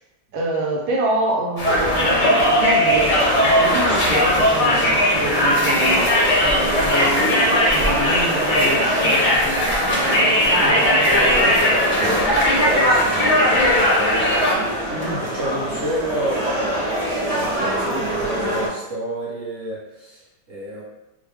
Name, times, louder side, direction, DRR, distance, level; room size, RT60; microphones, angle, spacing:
voice 1, 0.3-6.1 6.4-11.4, right 1 dB, 80° right, -2 dB, 1.6 m, -27 dB
Conversation, 1.6-14.5, left 1 dB, 55° left, 0.5 m, -18 dB
sound 1, 1.7-18.7, equal, 60° right, 1.5 m, -25 dB
voice 2, 10.5-16.4 17.2-20.8, right 1 dB, 40° right, -8 dB, 1.0 m, -29 dB
4.9 x 2.1 x 3.4 m, 0.97 s
omnidirectional pair, 2.1 m